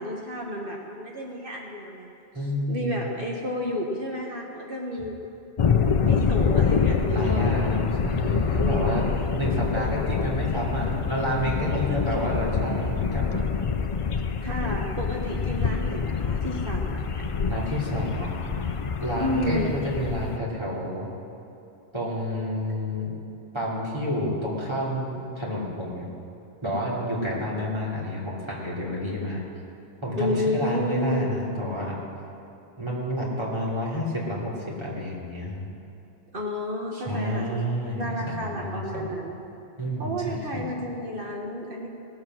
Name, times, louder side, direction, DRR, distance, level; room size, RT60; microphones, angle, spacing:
voice 1, 0.0-2.1 2.7-5.1 6.0-7.5 8.5-8.9 11.7-12.3 14.4-17.2 19.2-19.7 30.2-31.3 36.3-37.5 38.0-39.4 40.0-41.9, left 1 dB, 55° right, -1 dB, 1.4 m, -31 dB
voice 2, 2.3-3.0 7.1-9.0 9.3-13.4 15.3-15.4 17.4-18.7 19.0-21.1 21.9-23.1 23.5-26.1 26.6-29.4 30.0-32.0 32.8-35.7 36.9-39.1 39.8-40.6, equal, 25° right, -5 dB, 3.0 m, -29 dB
sound 1, 5.6-20.4, left 6 dB, 45° left, 0.4 m, -26 dB
18.5 x 7.7 x 6.2 m, 2.8 s
omnidirectional pair, 1.1 m